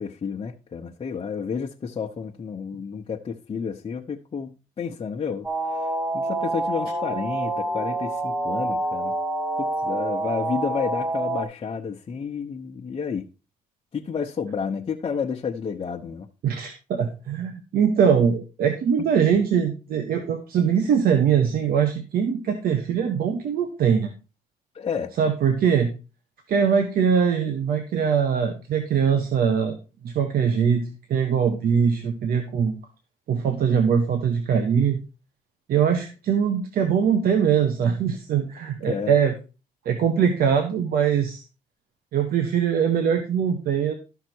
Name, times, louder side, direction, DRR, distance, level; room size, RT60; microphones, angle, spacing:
voice 1, 0.0-9.1 9.6-13.3 13.9-16.3 24.7-25.1 38.9-39.1, left 6 dB, 35° left, 1.0 m, -31 dB
sound 1, 5.4-11.4, right 2 dB, 15° right, 3.2 m, -27 dB
voice 2, 16.4-24.1 25.2-25.9 26.5-29.8 30.0-30.8 31.1-32.7 33.3-35.0 35.7-39.3 39.8-41.4 42.1-43.9, right 7 dB, 70° right, 1.4 m, -22 dB
13.0 x 5.9 x 4.6 m
cardioid pair, 95°, 16 cm